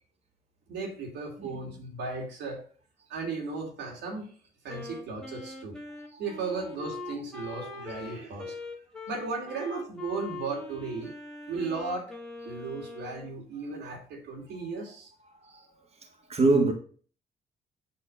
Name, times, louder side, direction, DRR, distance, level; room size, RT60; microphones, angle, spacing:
voice 1, 0.7-2.6 3.1-4.3 4.6-5.7 6.2-8.6 9.1-11.1 11.5-12.1 12.4-15.1, right 4 dB, 85° right, 2.5 m, -35 dB
voice 2, 1.4-1.7 6.1-6.7 7.1-7.8 15.4-15.7 16.3-16.7, right 3 dB, 40° right, 1.6 m, -28 dB
Wind instrument woodwind instrument, 4.7-13.3, left 2 dB, 5° left, 1.6 m, -42 dB
8.6 x 3.3 x 6.4 m
cardioid pair, 80°, 17 cm